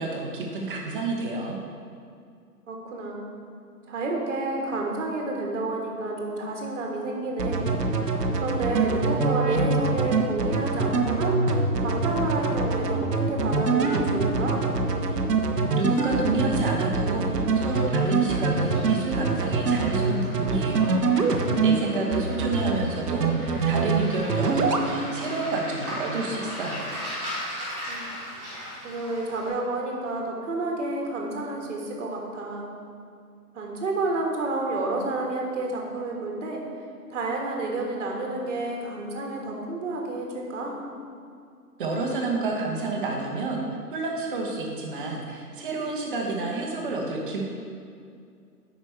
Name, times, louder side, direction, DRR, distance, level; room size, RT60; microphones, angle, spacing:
voice 1, 0.0-1.6 15.7-26.9 41.8-47.4, right 3 dB, 30° right, -1 dB, 1.1 m, -29 dB
voice 2, 2.7-3.2 3.9-7.6 8.4-11.4 11.8-14.7 21.8-22.0 27.9-28.0 28.8-32.7 33.5-36.6 37.1-40.8, right 2 dB, 50° right, 0 dB, 1.6 m, -30 dB
sound 1, 7.4-21.7 22.1-22.8 23.1-24.0 24.3-24.8, right 4 dB, 75° right, 1.0 m, -24 dB
Waves surf, 17.5-29.5, equal, 5° right, 0.6 m, -39 dB
8.7 x 5.3 x 4.7 m, 2.3 s
figure-of-eight pair, 140°, 48 cm